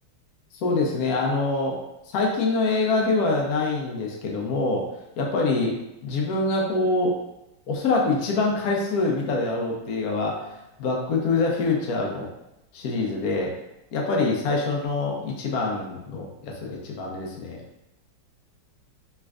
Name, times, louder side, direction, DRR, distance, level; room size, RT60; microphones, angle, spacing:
voice 1, 0.6-1.8 2.1-4.9 5.2-5.8 6.0-7.1 7.7-10.5 10.8-12.3 12.7-13.5 13.9-17.6, left 3 dB, 75° left, -1 dB, 0.8 m, -25 dB
3.4 x 3.1 x 2.4 m, 0.89 s
omnidirectional pair, 2.1 m